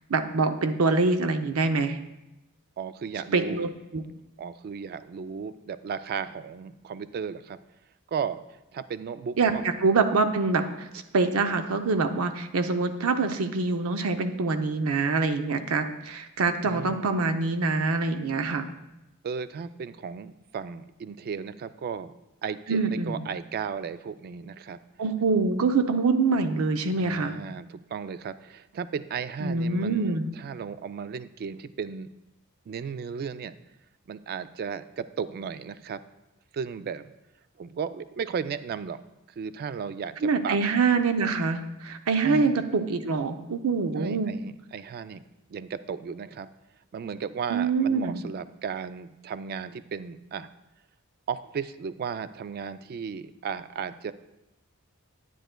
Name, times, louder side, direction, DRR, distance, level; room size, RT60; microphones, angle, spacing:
voice 1, 0.1-2.0 3.3-4.0 9.4-10.9 11.1-18.7 22.7-23.3 25.0-27.4 29.4-30.3 40.2-44.3 47.5-48.2, right 4 dB, 85° right, 8 dB, 0.6 m, -25 dB
voice 2, 2.8-3.7 4.4-7.6 8.1-8.4 8.7-9.7 16.6-17.2 19.2-22.1 22.4-24.8 27.0-32.1 32.7-33.5 34.1-36.0 36.5-37.1 37.6-39.0 39.4-40.6 42.2-42.5 44.0-45.2 45.5-46.5 46.9-50.5 51.3-54.1, right 6 dB, 45° right, 13 dB, 0.3 m, -35 dB
10.0 x 9.1 x 2.2 m, 0.93 s
head